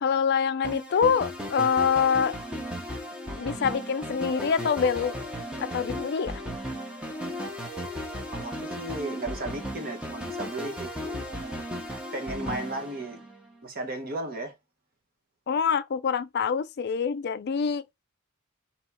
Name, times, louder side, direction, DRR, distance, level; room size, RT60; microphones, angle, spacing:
voice 1, 0.0-2.4 3.4-5.1 5.6-6.4 15.5-17.8, left 6 dB, 50° left, 0.4 m, -25 dB
sound 1, 0.6-13.6, equal, 5° right, 0.8 m, -36 dB
sound 2, 4.3-8.7, left 5 dB, 25° right, 1.5 m, -49 dB
voice 2, 8.3-11.6 12.1-13.2 13.6-14.6, right 2 dB, 45° right, 1.0 m, -35 dB
3.5 x 3.0 x 4.2 m
head